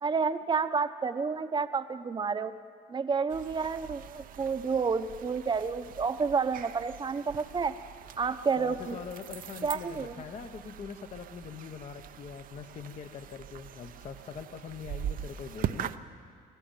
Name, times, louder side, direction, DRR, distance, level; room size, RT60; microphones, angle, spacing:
voice 1, 0.0-2.5 2.9-7.7 8.2-9.0 9.6-10.1, right 5 dB, 25° right, 10 dB, 0.9 m, -30 dB
sound 1, 3.3-16.0, right 10 dB, 55° right, 0.7 m, -42 dB
voice 2, 8.6-15.9, left 6 dB, 45° left, 7 dB, 1.0 m, -43 dB
25.0 x 13.5 x 9.0 m, 2.1 s
cardioid pair, 110°, 17 cm